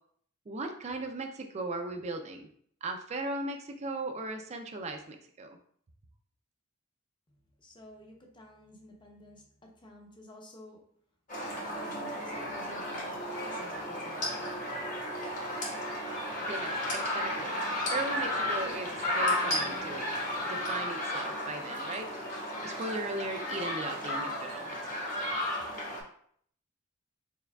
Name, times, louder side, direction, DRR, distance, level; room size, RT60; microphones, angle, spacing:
voice 1, 0.5-2.5 2.8-5.6 16.4-17.6 17.9-20.1 20.4-22.1 22.6-24.7 25.0-25.1, right 2 dB, 30° right, 5 dB, 0.4 m, -37 dB
voice 2, 7.3-10.8 11.4-14.6, left 1 dB, 20° left, 1 dB, 0.7 m, -51 dB
sound 1, 11.3-26.0, left 1 dB, 40° left, 1.2 m, -33 dB
4.5 x 3.5 x 2.3 m, 0.63 s
head